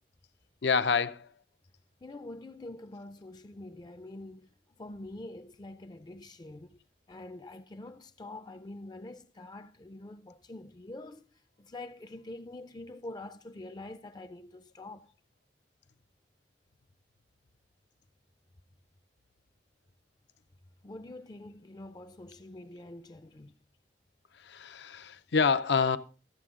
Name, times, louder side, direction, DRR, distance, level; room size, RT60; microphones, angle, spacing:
voice 1, 0.6-1.3 24.4-26.0, left 5 dB, 75° left, 0.6 m, -27 dB
voice 2, 2.0-4.5 4.8-6.8 7.1-11.3 11.6-15.1 20.8-23.5, left 2 dB, 25° left, 0.4 m, -45 dB
13.0 x 7.6 x 3.7 m
head